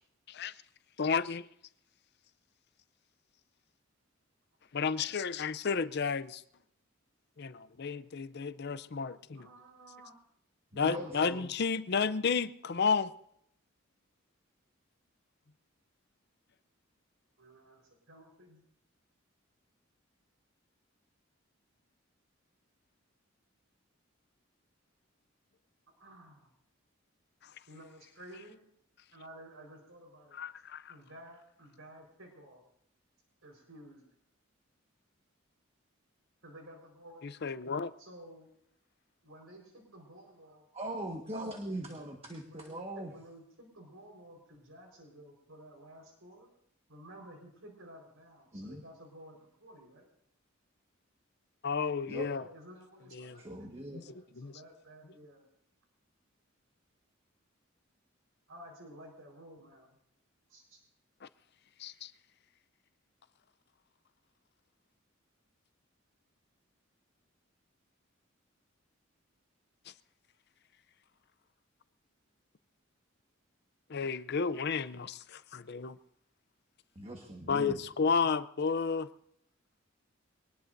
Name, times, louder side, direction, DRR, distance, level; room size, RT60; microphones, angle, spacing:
voice 1, 1.0-1.5 4.7-6.4 7.4-9.5 10.7-13.1 30.4-30.9 37.4-37.9 51.6-52.4 53.1-53.4 53.9-54.0 54.4-54.5 61.2-61.3 61.8-62.1 73.9-76.0 77.5-79.1, left 5 dB, 55° left, 0.6 m, -32 dB
voice 2, 9.3-10.2 17.4-18.6 26.0-26.5 27.7-28.6 29.1-30.4 30.9-32.6 33.4-34.0 36.4-37.3 38.0-38.5 39.2-40.7 42.4-46.5 46.9-50.1 52.4-55.5 58.5-60.0 60.5-60.8, right 1 dB, 85° right, 4.6 m, -53 dB
voice 3, 10.7-11.5 40.7-43.1 48.5-48.8 52.1-52.3 53.4-54.0 76.9-77.8, right 1 dB, 30° right, 1.5 m, -40 dB
23.5 x 19.0 x 2.7 m
head